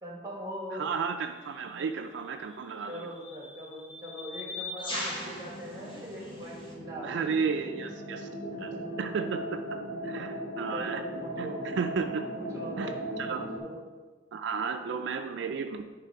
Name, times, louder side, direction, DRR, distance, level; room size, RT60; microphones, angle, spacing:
voice 1, 0.0-0.9 2.9-7.4 7.6-7.7 8.5-9.1 9.9-10.3 10.7-11.6 12.3-13.8, equal, 15° right, -2 dB, 1.6 m, -42 dB
voice 2, 0.7-3.1 7.0-8.3 8.6-8.7 9.0-9.6 10.0-11.0 11.4-11.5 11.8-12.2 12.8-13.4 14.3-15.9, right 5 dB, 70° right, 6 dB, 0.4 m, -33 dB
sound 1, 1.3-1.5 2.5-6.7, left 2 dB, 25° left, 1.5 m, -40 dB
sound 2, 4.9-13.6, right 1 dB, 65° left, 1.2 m, -38 dB
9.4 x 3.3 x 4.6 m, 1.4 s
head